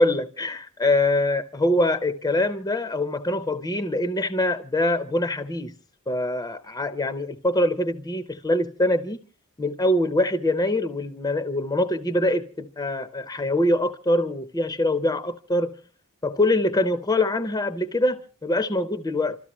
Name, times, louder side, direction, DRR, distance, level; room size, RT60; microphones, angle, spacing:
voice 1, 0.0-5.7 6.1-9.2 9.6-15.7 16.2-19.4, left 1 dB, 15° left, 0.6 m, -24 dB
27.5 x 13.5 x 3.0 m
head